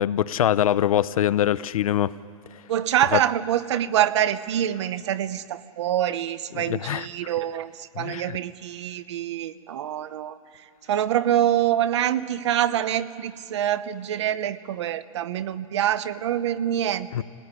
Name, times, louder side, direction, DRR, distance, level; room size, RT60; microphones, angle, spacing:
voice 1, 0.0-2.1 3.1-3.2 6.5-7.1 8.0-8.4 17.1-17.2, left 11 dB, 80° left, 16 dB, 0.8 m, -23 dB
voice 2, 2.7-10.4 10.9-17.2, right 11 dB, 55° right, 14 dB, 0.9 m, -25 dB
26.0 x 19.5 x 9.8 m, 2.4 s
supercardioid pair, 170°, 18 cm